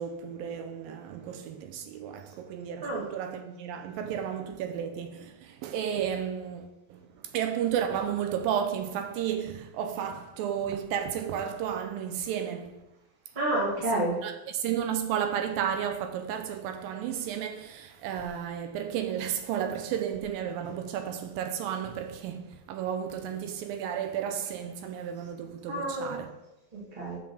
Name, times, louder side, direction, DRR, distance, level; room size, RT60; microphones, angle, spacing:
voice 1, 0.0-12.9 13.9-26.3, right 9 dB, 85° right, 2.3 m, -33 dB
voice 2, 13.3-14.2 25.7-26.2 26.7-27.2, right 1 dB, 20° right, 1.7 m, -29 dB
5.7 x 5.4 x 6.3 m
omnidirectional pair, 4.1 m